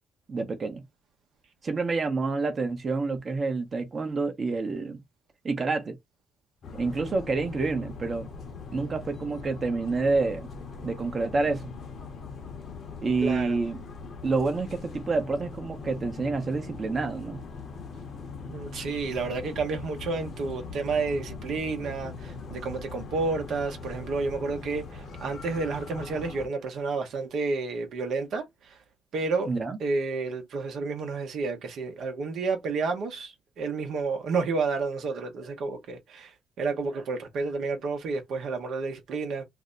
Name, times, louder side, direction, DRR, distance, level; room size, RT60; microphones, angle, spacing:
voice 1, 0.3-0.8 1.6-5.0 5.4-6.0 6.7-8.3 8.7-10.5 10.8-11.7 13.0-13.8 14.2-17.4 29.5-29.8, right 3 dB, 40° right, 0.8 m, -28 dB
sound 1, 6.6-26.5, left 4 dB, 60° left, 0.8 m, -41 dB
voice 2, 13.2-13.6 18.5-28.8 29.1-29.5 29.8-36.3 36.6-39.4, right 4 dB, 70° right, 0.8 m, -30 dB
2.6 x 2.1 x 3.8 m
cardioid pair, 90°, 0 cm